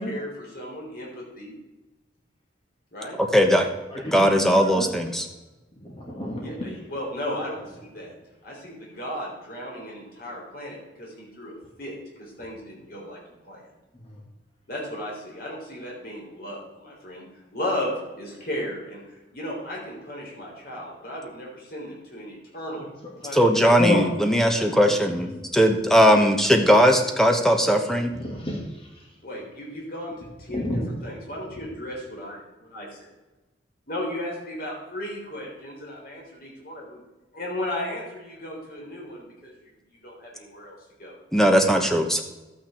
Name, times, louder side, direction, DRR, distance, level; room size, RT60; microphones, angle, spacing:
voice 1, 0.0-1.6 2.9-3.2 6.4-8.1 8.4-13.2 13.4-13.7 14.7-17.2 17.5-22.9 23.2-23.5 24.6-25.0 26.1-26.2 29.2-33.1 33.9-37.0 37.3-41.2, left 1 dB, 50° left, -3 dB, 3.6 m, -35 dB
voice 2, 3.3-3.7 4.1-5.2 23.3-25.3 25.5-28.1 41.3-42.2, equal, ahead, 4 dB, 1.1 m, -19 dB
voice 3, 3.9-4.9 5.7-6.6 13.9-14.2 23.6-24.1 25.1-25.4 28.1-29.1 30.5-30.8, left 2 dB, 30° left, -2 dB, 2.1 m, -29 dB
12.0 x 8.8 x 4.4 m, 1.1 s
head